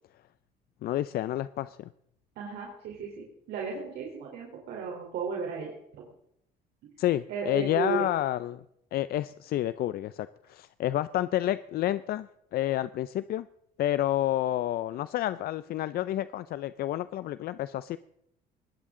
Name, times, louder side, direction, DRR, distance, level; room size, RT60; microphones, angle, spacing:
voice 1, 0.8-1.9 7.0-8.6 8.9-13.5 13.8-18.0, left 13 dB, 65° left, 15 dB, 0.6 m, -29 dB
voice 2, 2.4-6.0 6.8-6.9 7.3-8.0, right 5 dB, 80° right, -1 dB, 3.8 m, -35 dB
20.0 x 16.5 x 3.8 m, 0.75 s
cardioid pair, 110°, 17 cm